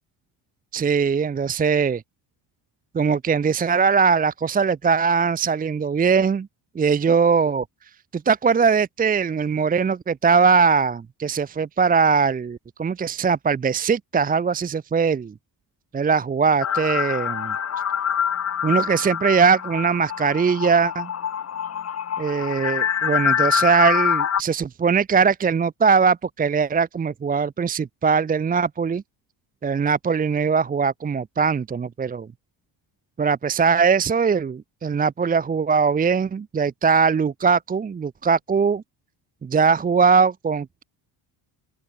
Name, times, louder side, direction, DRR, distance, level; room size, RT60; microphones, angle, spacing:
voice 1, 0.7-2.0 2.9-6.5 6.7-7.6 8.1-15.3 15.9-17.5 18.6-21.1 22.2-29.0 29.6-32.3 33.2-38.8 39.4-40.8, right 5 dB, 20° right, 0.8 m, -21 dB
sound 1, 16.6-24.4, left 8 dB, 35° left, 3.2 m, -25 dB
open air
cardioid pair, 175°, 45 cm